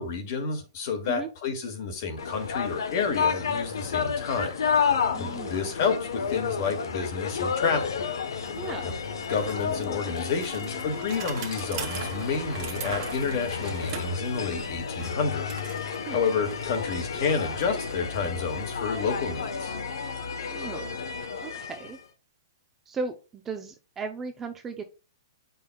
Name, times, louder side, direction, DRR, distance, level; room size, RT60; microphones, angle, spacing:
voice 1, 0.0-8.0 8.8-8.9 9.3-15.5 16.1-19.7, left 5 dB, 40° left, 1.8 m, -30 dB
sound 1, 2.2-22.0, left 6 dB, 80° left, 1.0 m, -31 dB
voice 2, 5.1-5.6 8.6-8.9 16.1-16.2 20.4-21.0 21.4-22.0 22.9-24.9, right 4 dB, 10° right, 0.5 m, -36 dB
Bicycle, 7.0-7.1 7.3-20.2, right 8 dB, 30° right, 1.3 m, -43 dB
8.3 x 5.6 x 2.3 m
hypercardioid pair, 165°, 2 cm